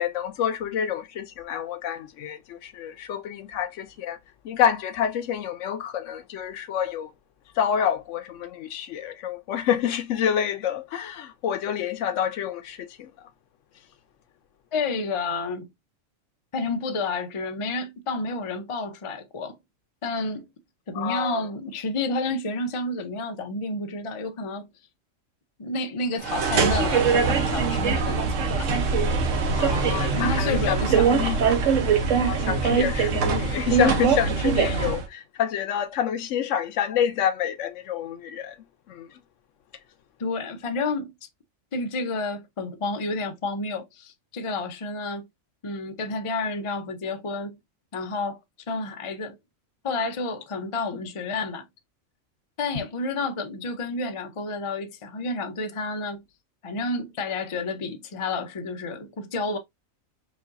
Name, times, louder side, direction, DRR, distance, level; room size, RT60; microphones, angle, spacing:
voice 1, 0.0-4.2 4.4-7.1 7.6-13.1 21.0-21.4 29.5-30.8 31.1-31.3 32.2-38.5 38.9-39.1, left 9 dB, 70° left, 0.9 m, -28 dB
voice 2, 14.7-15.7 16.5-19.6 20.0-20.5 20.9-24.7 25.6-28.7 30.2-31.4 40.2-41.1 41.7-45.3 45.6-47.6 47.9-48.4 48.7-49.4 49.8-51.7 52.6-56.2 56.6-59.6, left 3 dB, 55° left, 0.3 m, -30 dB
sound 1, 26.2-35.1, right 5 dB, 70° right, 1.2 m, -22 dB
4.9 x 2.5 x 2.5 m
omnidirectional pair, 1.4 m